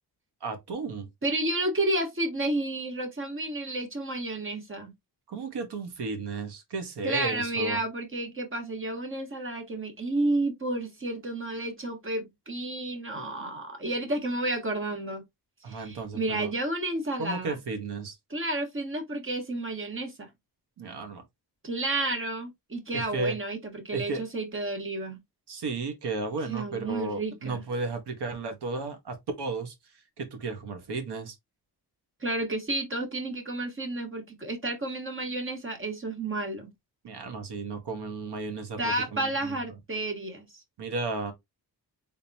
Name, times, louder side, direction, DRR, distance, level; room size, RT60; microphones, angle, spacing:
voice 1, 0.4-1.1 5.3-7.8 15.6-16.5 17.2-18.2 20.8-21.2 22.9-23.4 23.9-24.2 25.5-29.7 30.2-31.3 37.0-39.5 40.8-41.3, right 3 dB, 75° right, 1.4 m, -34 dB
voice 2, 1.2-4.9 7.0-15.2 15.7-17.6 18.3-20.3 21.6-25.2 26.5-27.6 32.2-36.7 38.8-40.4, right 2 dB, 30° right, 1.5 m, -31 dB
3.9 x 3.6 x 2.8 m
cardioid pair, 95°, 41 cm